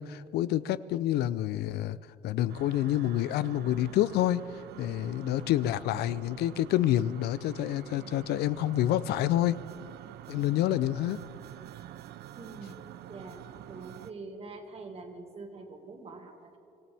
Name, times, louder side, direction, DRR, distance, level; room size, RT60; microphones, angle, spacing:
voice 1, 0.0-2.0 2.2-4.5 4.8-9.6 10.3-11.2, left 13 dB, 75° left, 16 dB, 0.4 m, -28 dB
sound 1, 2.5-14.1, right 12 dB, 70° right, 0.5 m, -46 dB
voice 2, 12.4-13.4 13.7-16.6, right 3 dB, 35° right, 4 dB, 1.9 m, -45 dB
25.0 x 15.5 x 3.4 m, 2.7 s
cardioid pair, 110°, 17 cm